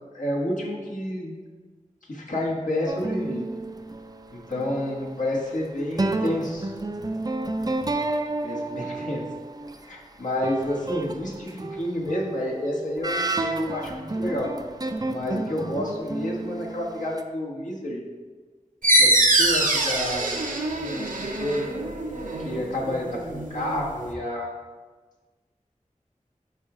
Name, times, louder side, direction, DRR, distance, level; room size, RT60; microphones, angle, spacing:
voice 1, 0.0-1.4 2.0-3.5 4.3-6.7 8.4-9.3 9.8-14.5 15.0-18.0 19.0-20.3 20.8-21.7 22.4-24.5, left 1 dB, 70° left, -4 dB, 1.3 m, -30 dB
sound 1, 2.9-5.2 5.9-9.8 10.4-17.2, right 2 dB, 30° right, 0.4 m, -31 dB
sound 2, 18.8-24.1, right 1 dB, 80° right, 0.7 m, -24 dB
5.6 x 3.7 x 4.8 m, 1.4 s
wide cardioid pair, 60°, 13 cm